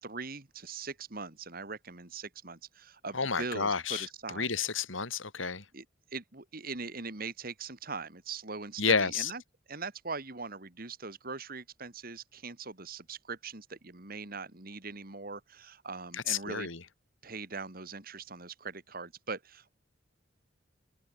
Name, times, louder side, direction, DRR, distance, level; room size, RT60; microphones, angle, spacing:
voice 1, 0.0-4.5 5.7-5.9 6.1-9.4 9.7-16.7 17.2-19.7, right 4 dB, 50° right, 2.5 m, -41 dB
voice 2, 3.1-4.1 4.3-5.6 8.8-9.3 16.1-16.8, left 5 dB, 85° left, 3.7 m, -30 dB
open air
head